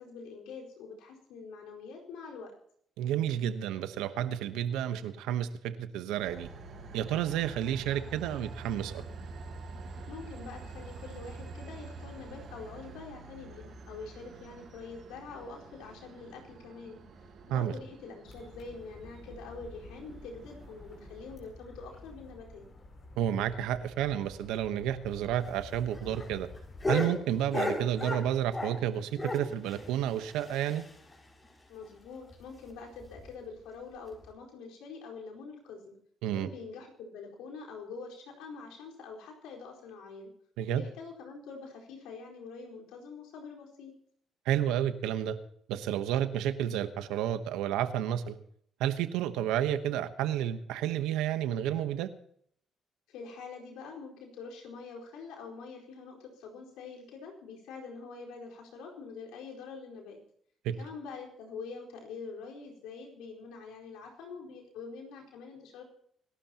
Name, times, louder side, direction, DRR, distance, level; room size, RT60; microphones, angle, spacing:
voice 1, 0.0-2.5 10.1-17.0 17.5-22.7 31.7-35.9 36.3-40.3 40.7-43.9 53.1-60.2 60.8-65.8, left 4 dB, 85° left, 0 dB, 4.5 m, -45 dB
voice 2, 3.0-6.5 6.9-9.0 17.5-17.7 23.2-26.5 26.9-30.8 36.2-36.5 40.6-40.8 44.4-45.4 45.7-48.4 48.8-52.1 60.6-60.7, right 10 dB, 85° right, 11 dB, 1.1 m, -31 dB
Train, 6.2-21.3, right 3 dB, 60° right, 5.8 m, -47 dB
sound 1, 18.3-26.9, left 2 dB, 50° left, 7.4 m, -51 dB
sound 2, 25.4-28.9 29.1-31.1 31.4-31.5 31.8-31.9 32.3-32.4 33.0-33.3 34.1-34.2, left 2 dB, 30° left, 6.1 m, -35 dB
26.5 x 12.5 x 3.0 m, 0.64 s
supercardioid pair, 65°, 0 cm